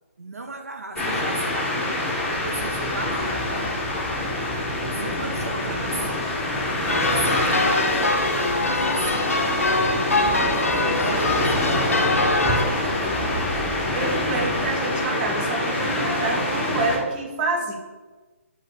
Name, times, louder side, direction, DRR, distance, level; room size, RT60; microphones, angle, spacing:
voice 1, 0.2-1.9 2.3-3.5 5.0-6.2 6.8-9.8 10.5-13.4, right 3 dB, 85° right, 4 dB, 0.4 m, -35 dB
sound 1, 0.9-17.0, left 1 dB, 10° left, 1.2 m, -25 dB
sound 2, 2.2-14.8, right 2 dB, 5° right, 0.5 m, -38 dB
sound 3, 6.9-12.6, left 2 dB, 75° left, 0.5 m, -24 dB
voice 2, 13.9-17.7, right 3 dB, 35° right, 0 dB, 0.9 m, -27 dB
5.0 x 2.4 x 4.2 m, 1.2 s
figure-of-eight pair, 140°, 8 cm